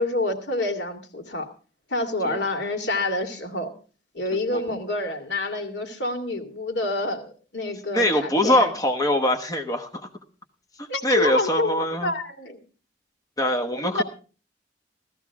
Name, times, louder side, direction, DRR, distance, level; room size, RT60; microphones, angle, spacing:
voice 1, 0.0-1.5 1.9-3.7 4.1-8.7 10.9-12.6 13.9-14.0, left 2 dB, 80° left, 4 dB, 2.4 m, -27 dB
voice 2, 7.9-10.1 10.8-12.1 13.4-14.0, left 1 dB, 20° left, 4 dB, 1.1 m, -23 dB
16.0 x 14.0 x 3.6 m, 0.38 s
head